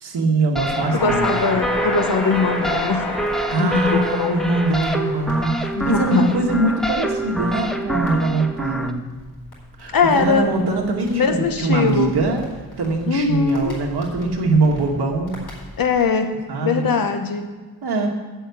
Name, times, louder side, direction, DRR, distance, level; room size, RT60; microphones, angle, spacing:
voice 1, 0.0-1.3 3.5-9.0 9.8-12.4 12.8-15.4 16.5-16.8 17.8-18.1, right 3 dB, 90° right, 0 dB, 2.0 m, -22 dB
Crackle, 0.6-16.1, left 2 dB, 80° left, 4.0 m, -33 dB
sound 1, 0.6-8.9, right 1 dB, ahead, 0.5 m, -26 dB
voice 2, 0.9-3.1 3.6-4.4 5.7-6.3 9.9-10.5 11.1-12.1 13.1-13.8 15.8-16.3 16.6-17.5, left 5 dB, 65° left, 6 dB, 1.2 m, -21 dB
7.9 x 7.8 x 8.1 m, 1.4 s
wide cardioid pair, 170°, 38 cm